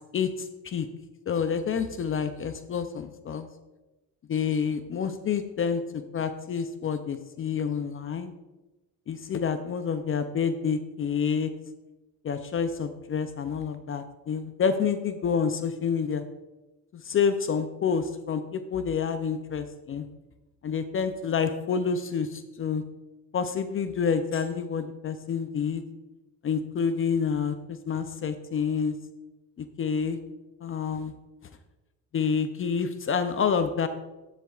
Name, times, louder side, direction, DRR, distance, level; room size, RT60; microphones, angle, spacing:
voice 1, 0.1-0.9 1.3-3.5 4.3-8.3 9.1-11.5 12.2-16.2 16.9-20.1 20.6-22.8 23.3-25.8 26.4-28.9 29.8-30.2 30.6-31.1 32.1-33.9, left 6 dB, 35° left, 10 dB, 0.5 m, -28 dB
10.5 x 7.4 x 2.4 m, 1.1 s
cardioid pair, 115°, 37 cm